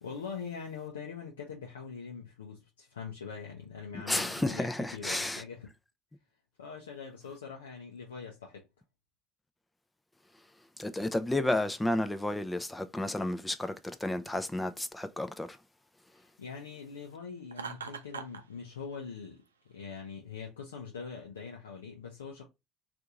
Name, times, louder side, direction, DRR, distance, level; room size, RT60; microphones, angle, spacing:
voice 1, 0.0-5.7 6.6-8.6 16.4-22.4, left 6 dB, 85° left, 0.6 m, -43 dB
voice 2, 4.1-5.4 10.8-13.7 14.0-15.5, left 1 dB, 10° left, 0.5 m, -31 dB
Laughter, 17.5-18.4, right 6 dB, 85° right, 0.4 m, -40 dB
2.7 x 2.5 x 3.5 m
hypercardioid pair, 60°, 0 cm